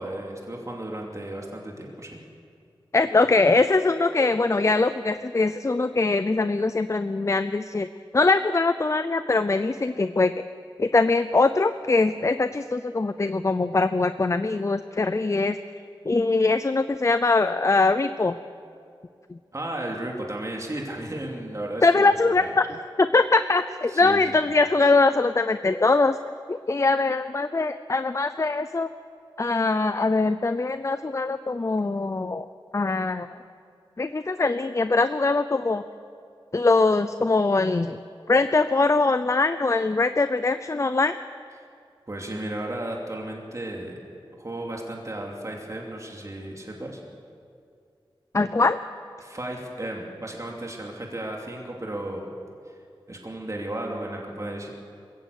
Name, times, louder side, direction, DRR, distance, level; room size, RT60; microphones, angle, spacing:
voice 1, 0.0-2.2 19.5-22.5 23.9-24.2 42.1-44.1 44.4-47.0 49.2-52.2 52.7-52.8 53.1-54.7, right 1 dB, 35° right, -1 dB, 2.9 m, -34 dB
voice 2, 2.9-7.9 8.1-10.3 10.8-15.6 16.1-18.4 19.3-19.4 21.8-26.2 26.5-28.9 29.4-32.5 32.7-33.3 34.0-35.8 36.5-38.0 38.3-41.2 48.3-48.8, left 3 dB, 35° left, 12 dB, 0.6 m, -22 dB
21.0 x 16.0 x 8.1 m, 2.3 s
wide cardioid pair, 60°, 9 cm